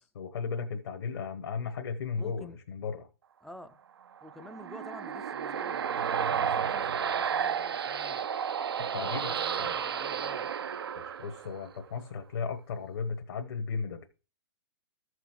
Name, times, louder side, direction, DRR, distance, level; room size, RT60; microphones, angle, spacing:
voice 1, 0.1-3.1 8.9-9.3 9.6-9.8 11.0-14.0, left 5 dB, 60° left, 1.2 m, -35 dB
voice 2, 2.1-2.6 3.4-3.8 4.2-8.3 9.0-10.5, left 1 dB, ahead, 0.5 m, -49 dB
sound 1, 4.2-11.8, right 7 dB, 65° right, 0.6 m, -32 dB
14.5 x 6.2 x 3.1 m
figure-of-eight pair, 115°, 14 cm